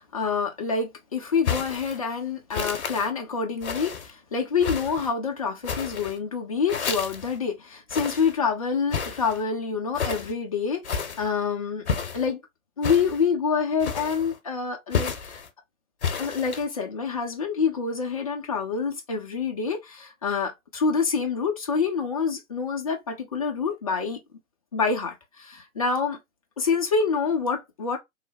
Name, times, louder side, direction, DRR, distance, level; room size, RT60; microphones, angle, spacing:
voice 1, 0.0-11.9 12.1-12.4 12.8-15.4 16.2-24.2 24.7-26.2 26.6-28.0, left 5 dB, 25° left, 0.5 m, -27 dB
sound 1, 1.4-2.0 2.5-3.1 3.6-4.1 4.6-5.1 5.6-6.2 6.7-7.4 7.9-8.4 8.9-9.4 9.9-10.3 10.8-11.3 11.9-12.3 12.8-13.3 13.8-14.4 14.9-15.5 16.0-16.6, left 6 dB, 50° left, 0.8 m, -31 dB
3.1 x 2.0 x 2.5 m
figure-of-eight pair, 145°, 42 cm